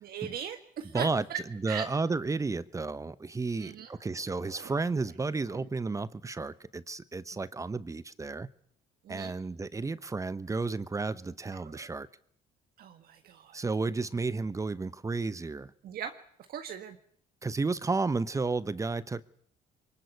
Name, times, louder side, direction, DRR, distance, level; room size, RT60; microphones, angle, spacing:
voice 1, 0.0-1.4 1.7-1.9 3.6-3.9 4.4-4.7 5.5-5.7 9.0-9.3 11.6-11.9 12.8-13.6 15.8-16.1 16.5-17.0, right 8 dB, 60° right, 1.7 m, -39 dB
voice 2, 0.9-8.5 9.1-12.1 13.5-15.7 17.4-19.2, right 3 dB, 20° right, 0.9 m, -32 dB
23.5 x 20.0 x 8.3 m
cardioid pair, 110°, 17 cm